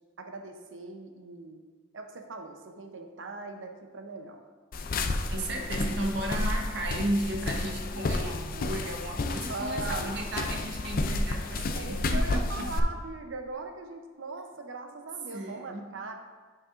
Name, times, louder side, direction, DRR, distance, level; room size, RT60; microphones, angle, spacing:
voice 1, 0.2-1.6 1.9-4.4 9.5-10.1 11.7-16.1, right 3 dB, 80° right, 5 dB, 0.7 m, -40 dB
sound 1, 4.7-12.8, left 2 dB, 50° left, 0.4 m, -31 dB
voice 2, 5.3-12.7 15.3-15.9, right 1 dB, 65° right, 1 dB, 1.0 m, -34 dB
9.2 x 5.8 x 2.5 m, 1.4 s
head